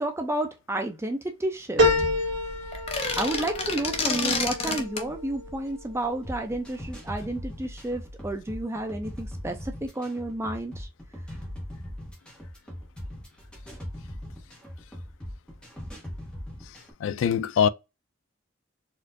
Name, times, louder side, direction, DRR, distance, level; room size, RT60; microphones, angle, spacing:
voice 1, 0.0-2.1 3.2-10.9, right 1 dB, 15° right, 0.4 m, -31 dB
sound 1, 1.8-6.5 7.0-7.7 8.1-8.2, left 1 dB, 70° right, 1.7 m, -28 dB
sound 2, 2.7-5.1, left 4 dB, 30° left, 0.7 m, -29 dB
sound 3, 6.1-16.9, equal, 5° left, 1.2 m, -40 dB
voice 2, 17.0-17.7, left 8 dB, 75° left, 0.3 m, -23 dB
4.4 x 2.5 x 2.5 m
head